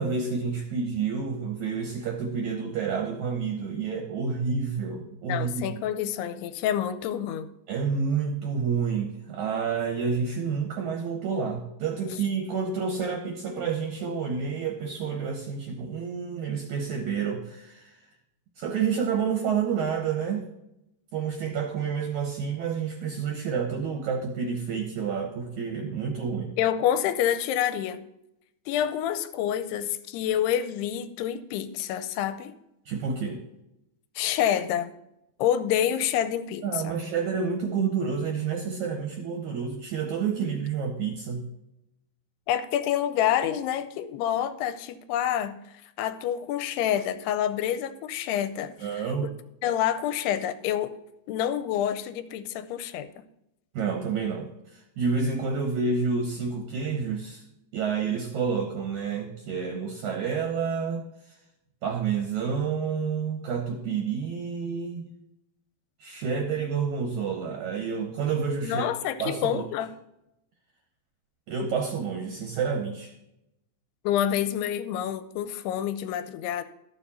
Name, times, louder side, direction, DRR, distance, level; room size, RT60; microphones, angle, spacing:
voice 1, 0.0-5.8 7.7-17.9 18.6-20.5 21.1-26.5 32.9-33.4 36.6-41.5 48.8-49.3 53.7-57.4 57.7-61.0 61.8-65.1 66.0-68.9 69.2-69.6 71.5-73.1, right 6 dB, 70° right, 3 dB, 1.8 m, -29 dB
voice 2, 5.3-7.5 26.6-28.0 28.7-32.6 34.2-34.9 35.4-37.0 42.5-45.6 46.0-49.0 49.6-50.9 51.3-53.1 68.6-69.9 74.0-76.6, left 10 dB, 85° left, 12 dB, 2.6 m, -27 dB
12.5 x 7.1 x 4.2 m, 0.86 s
omnidirectional pair, 4.7 m